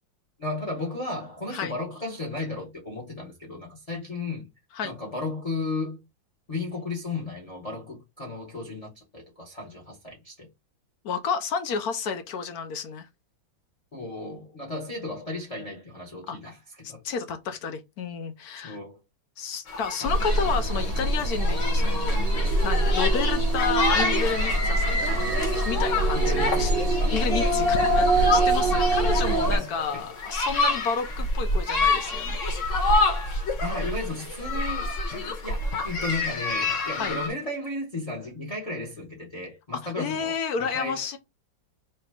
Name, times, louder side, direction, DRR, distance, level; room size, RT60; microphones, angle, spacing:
voice 1, 0.4-4.5 4.8-6.0 6.5-10.5 13.9-17.0 18.6-19.0 20.0-20.1 26.1-27.2 29.5-30.0 33.6-41.0, left 2 dB, 25° left, 1.0 m, -34 dB
voice 2, 11.0-13.1 16.3-16.4 17.0-18.8 19.4-25.3 25.6-26.7 27.1-32.4 37.0-37.1 39.8-41.2, left 6 dB, 65° left, 1.0 m, -31 dB
sound 1, 19.7-37.3, left 3 dB, 45° left, 1.3 m, -28 dB
sound 2, 20.0-29.6, right 1 dB, 45° right, 0.8 m, -23 dB
3.3 x 3.0 x 4.6 m
omnidirectional pair, 2.1 m